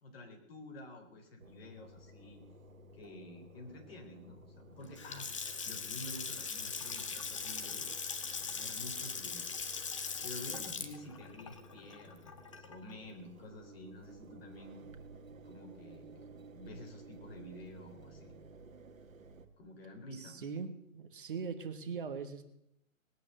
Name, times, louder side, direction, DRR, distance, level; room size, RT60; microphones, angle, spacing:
voice 1, 0.0-2.4 2.9-5.3 5.7-7.9 8.4-9.5 10.2-14.8 15.4-16.3 16.5-18.3 19.6-20.4, left 1 dB, 45° left, 3 dB, 3.6 m, -50 dB
Engine, 1.4-19.5, right 2 dB, 70° right, 1.9 m, -55 dB
Water tap faucet / Sink (filling or washing) / Splash splatter, 4.8-12.9, left 5 dB, 25° left, 0.8 m, -40 dB
voice 2, 20.1-22.4, right 5 dB, 40° right, 8 dB, 1.3 m, -41 dB
19.5 x 9.5 x 6.6 m, 0.80 s
hypercardioid pair, 165°, 42 cm